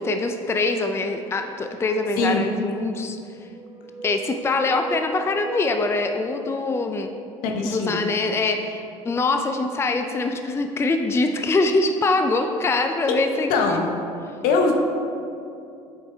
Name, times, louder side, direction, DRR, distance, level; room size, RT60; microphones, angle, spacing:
voice 1, 0.0-3.2 4.0-7.1 7.6-13.8, left 3 dB, 15° left, 6 dB, 0.4 m, -24 dB
sound 1, 1.2-2.4 3.3-7.1, right 4 dB, 25° right, 0.7 m, -38 dB
voice 2, 7.4-8.0 13.1-13.2 13.5-13.9 14.4-14.7, left 4 dB, 70° left, 2 dB, 1.0 m, -21 dB
8.5 x 4.6 x 3.4 m, 2.6 s
hypercardioid pair, 70°, 16 cm